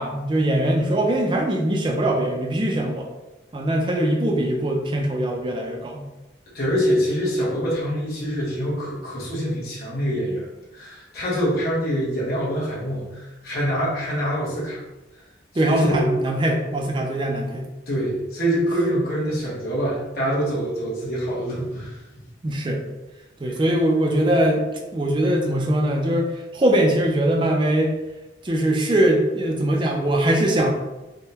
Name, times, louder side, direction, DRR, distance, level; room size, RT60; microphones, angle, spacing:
voice 1, 0.0-3.1 3.5-6.1 15.5-17.7 22.4-22.8 23.4-24.6 24.9-27.9 28.4-30.7, right 1 dB, 25° right, 1 dB, 0.4 m, -21 dB
voice 2, 6.5-10.5 10.7-14.8 15.6-16.1 17.9-22.0 23.5-23.6, equal, 55° left, -7 dB, 1.0 m, -25 dB
3.5 x 2.2 x 2.8 m, 1.0 s
head